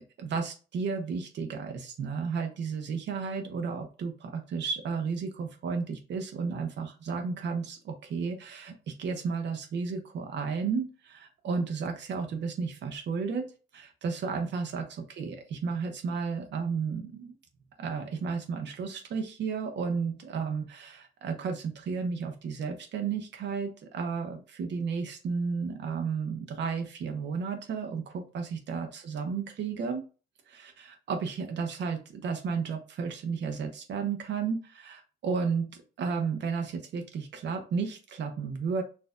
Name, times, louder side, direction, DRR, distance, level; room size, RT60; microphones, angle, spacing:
voice 1, 0.2-17.3 17.8-30.0 30.5-38.8, right 5 dB, 65° right, 4 dB, 0.7 m, -33 dB
4.2 x 2.6 x 2.2 m, 0.34 s
cardioid pair, 90°, 20 cm